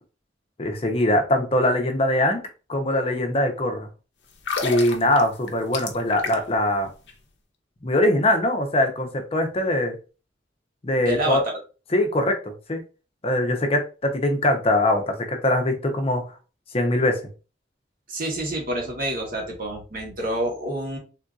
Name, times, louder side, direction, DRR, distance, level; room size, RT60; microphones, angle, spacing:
voice 1, 0.6-2.4 2.7-3.9 4.6-6.9 7.8-10.0 10.8-11.4 11.9-12.8 13.2-16.2 16.7-17.2, left 1 dB, 30° left, 4 dB, 0.6 m, -22 dB
sound 1, 4.3-6.6 6.9-7.1, left 5 dB, 70° left, 0.6 m, -31 dB
voice 2, 11.0-11.4 18.1-21.0, right 1 dB, 50° right, 0 dB, 1.1 m, -27 dB
3.7 x 2.6 x 2.3 m, 0.34 s
head